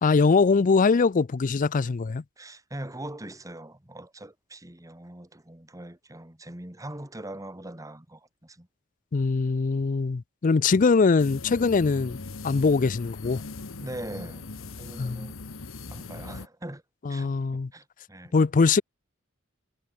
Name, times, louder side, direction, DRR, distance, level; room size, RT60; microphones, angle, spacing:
voice 1, 0.0-2.2 9.1-13.4 15.0-15.3 17.1-17.7 18.3-18.8, left 4 dB, 40° left, 0.4 m, -22 dB
voice 2, 2.4-8.7 9.5-9.6 13.8-14.5 14.8-15.4 15.9-16.8 17.1-18.4, right 1 dB, 15° right, 2.1 m, -41 dB
sound 1, 11.2-16.5, left 3 dB, 85° left, 1.2 m, -40 dB
head